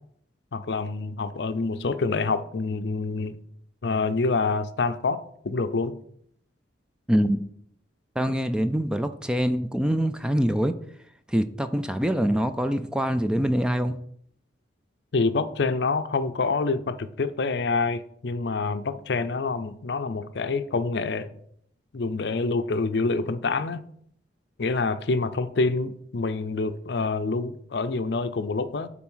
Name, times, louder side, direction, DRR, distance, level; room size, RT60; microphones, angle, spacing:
voice 1, 0.5-3.4 3.8-5.9 15.1-21.4 21.9-23.8 24.6-28.9, left 3 dB, 65° left, 0.5 m, -27 dB
voice 2, 7.1-7.4 8.2-10.7 11.3-14.0, equal, 5° right, 0.3 m, -24 dB
7.2 x 4.2 x 5.5 m
head